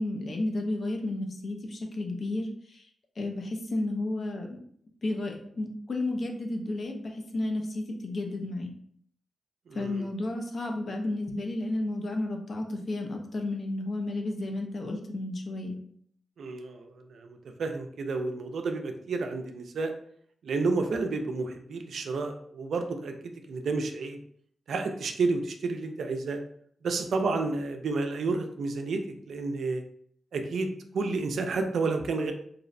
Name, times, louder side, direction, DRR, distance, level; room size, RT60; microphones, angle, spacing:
voice 1, 0.0-2.8 3.2-4.6 5.0-8.7 9.7-15.8, left 2 dB, 55° left, 3 dB, 0.5 m, -32 dB
voice 2, 9.7-10.1 16.4-19.9 20.4-24.2 24.7-26.4 26.8-29.8 30.3-32.3, right 3 dB, 75° right, 5 dB, 0.3 m, -31 dB
2.6 x 2.0 x 2.5 m, 0.64 s
cardioid pair, 70°, 0 cm